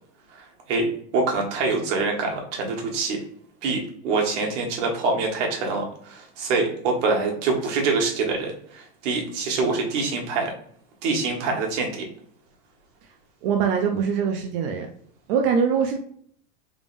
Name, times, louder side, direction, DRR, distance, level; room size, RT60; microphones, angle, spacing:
voice 1, 0.3-3.2 3.6-10.5 11.0-12.1, right 3 dB, 80° right, 1 dB, 1.4 m, -25 dB
voice 2, 13.4-14.9 15.3-16.0, right 6 dB, 50° right, 3 dB, 0.5 m, -22 dB
3.5 x 3.5 x 2.5 m, 0.63 s
supercardioid pair, 170°, 35 cm